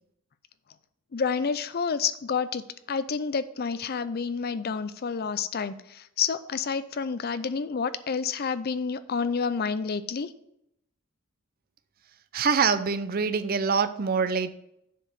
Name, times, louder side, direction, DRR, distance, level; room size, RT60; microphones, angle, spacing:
voice 1, 1.1-10.3, left 5 dB, 45° left, 13 dB, 0.5 m, -29 dB
voice 2, 12.3-14.5, right 5 dB, 45° right, 12 dB, 0.5 m, -25 dB
7.4 x 4.7 x 6.7 m, 0.77 s
head